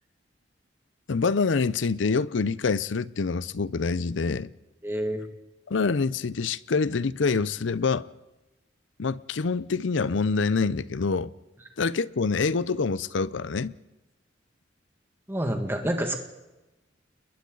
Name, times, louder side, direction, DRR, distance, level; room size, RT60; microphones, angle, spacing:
voice 1, 1.1-4.5 5.7-8.1 9.0-11.3 11.8-13.7, left 4 dB, 75° left, 0.6 m, -26 dB
voice 2, 4.8-5.3 15.3-16.2, right 1 dB, 10° right, 2.0 m, -28 dB
30.0 x 21.5 x 4.0 m
head